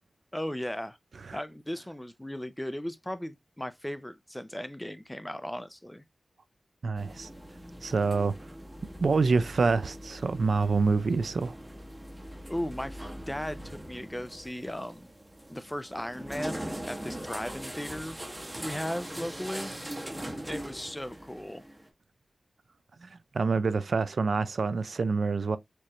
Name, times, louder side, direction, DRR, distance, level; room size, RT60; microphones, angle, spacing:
voice 1, 0.3-1.0 1.3-6.0 12.5-15.1 15.5-19.7 20.5-21.6, equal, 10° left, 0.4 m, -37 dB
voice 2, 6.8-7.3 7.8-8.3 9.0-11.6 23.0-25.6, right 4 dB, 80° right, 0.4 m, -27 dB
sound 1, 7.0-21.9, right 1 dB, 15° right, 0.8 m, -41 dB
4.5 x 2.5 x 3.0 m
wide cardioid pair, 80°, 0 cm